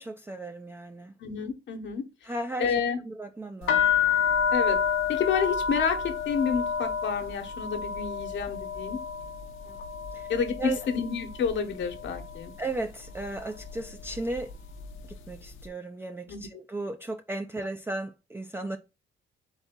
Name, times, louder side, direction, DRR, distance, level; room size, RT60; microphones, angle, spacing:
voice 1, 0.0-1.1 2.2-3.9 9.7-9.8 10.1-10.3 10.6-10.8 12.6-14.5 15.3-18.8, right 2 dB, 10° right, 0.5 m, -35 dB
voice 2, 1.2-2.0 2.6-3.0 4.5-4.8 5.1-9.0 10.3-10.6 10.9-12.5 16.3-16.5, left 6 dB, 70° left, 1.2 m, -29 dB
sound 1, 3.6-11.5 11.8-12.5 13.1-13.4 13.7-15.1, left 7 dB, 85° left, 0.8 m, -29 dB
4.1 x 3.4 x 3.7 m
cardioid pair, 90°, 20 cm